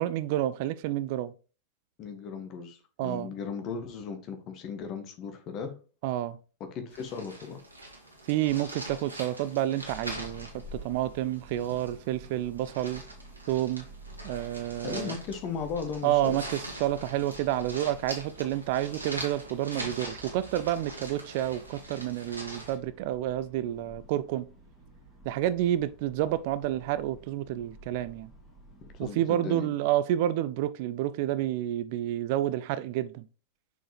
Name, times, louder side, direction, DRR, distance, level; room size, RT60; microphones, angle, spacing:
voice 1, 0.0-1.3 3.0-3.3 6.0-6.4 8.3-13.0 13.5-13.9 14.2-15.2 16.0-24.5 25.3-28.3 29.0-33.2, right 13 dB, 50° right, 0.3 m, -29 dB
voice 2, 2.0-5.8 6.6-7.6 14.8-16.4 28.8-29.7, left 6 dB, 35° left, 1.3 m, -37 dB
sound 1, 6.9-22.8, right 1 dB, 80° right, 1.8 m, -43 dB
sound 2, 9.9-29.1, right 1 dB, 10° left, 2.5 m, -51 dB
6.1 x 4.6 x 3.4 m
figure-of-eight pair, 90°, 0 cm